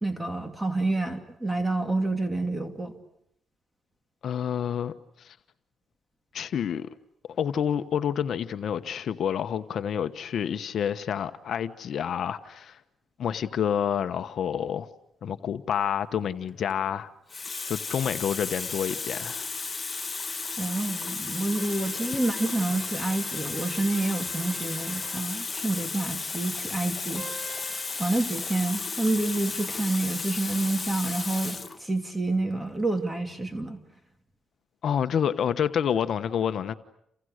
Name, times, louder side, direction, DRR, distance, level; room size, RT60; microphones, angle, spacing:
voice 1, 0.0-2.9 20.6-27.3 28.0-33.8, right 2 dB, 10° right, 2.8 m, -28 dB
voice 2, 4.2-5.4 6.3-6.9 7.3-12.8 13.2-14.9 15.2-17.1 17.7-19.5 34.8-36.7, left 8 dB, 60° left, 1.1 m, -28 dB
Water tap faucet, 16.5-16.7 17.3-31.8 32.7-32.9, left 4 dB, 30° left, 1.4 m, -34 dB
sound 1, 21.6-25.4 27.1-28.3, right 2 dB, 30° right, 4.5 m, -46 dB
29.5 x 29.0 x 6.6 m
cardioid pair, 90°, 0 cm